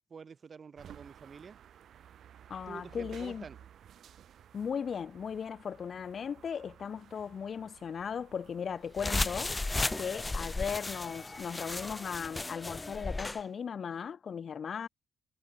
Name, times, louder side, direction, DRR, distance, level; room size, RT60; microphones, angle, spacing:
voice 1, 0.1-1.6 2.7-3.6, right 6 dB, 40° right, 7.8 m, -48 dB
sound 1, 0.8-12.1, right 9 dB, 65° right, 2.6 m, -56 dB
voice 2, 2.5-3.4 4.5-9.6 10.0-14.9, left 7 dB, 50° left, 0.9 m, -37 dB
sound 2, 9.0-13.4, left 2 dB, 20° left, 0.4 m, -34 dB
cardioid pair, 90°, 0 cm